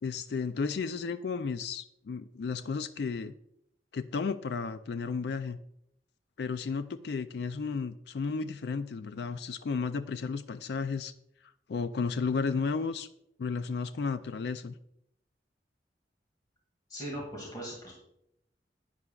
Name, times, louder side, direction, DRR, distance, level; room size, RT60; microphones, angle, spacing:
voice 1, 0.0-3.3 3.9-5.6 6.4-11.1 11.7-13.1 13.4-14.7, left 5 dB, 70° left, 12 dB, 0.4 m, -33 dB
voice 2, 16.9-17.9, right 1 dB, 25° left, -3 dB, 2.1 m, -39 dB
10.5 x 9.8 x 2.3 m, 0.77 s
head